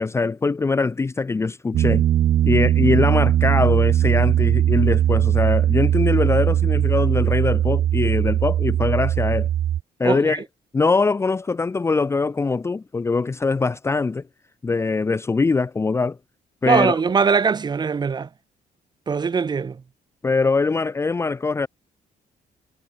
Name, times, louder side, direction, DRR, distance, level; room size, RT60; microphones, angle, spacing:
voice 1, 0.0-2.0 2.4-9.5 10.0-10.4 10.7-14.2 14.6-16.2 16.6-17.0 20.2-21.7, left 4 dB, 15° left, 0.9 m, -22 dB
Piano, 1.7-9.8, right 11 dB, 55° right, 1.5 m, -19 dB
voice 2, 10.0-10.4 16.6-18.3 19.1-19.8, right 5 dB, 25° right, 3.1 m, -21 dB
cardioid pair, 175°, 16 cm